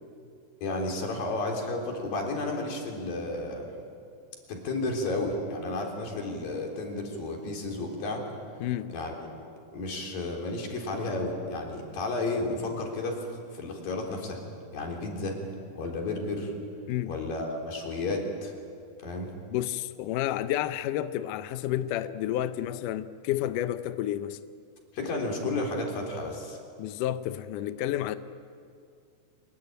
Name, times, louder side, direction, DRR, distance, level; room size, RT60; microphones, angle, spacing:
voice 1, 0.6-3.7 4.5-8.2 8.9-9.1 9.7-13.3 13.5-14.4 14.7-15.4 15.8-16.5 17.1-18.5 19.0-19.3 24.9-26.6, left 2 dB, 60° left, 5.4 m, -32 dB
voice 2, 8.6-8.9 16.9-17.1 19.5-24.4 26.8-28.2, left 13 dB, 80° left, 1.9 m, -30 dB
25.5 x 22.0 x 9.1 m
omnidirectional pair, 4.6 m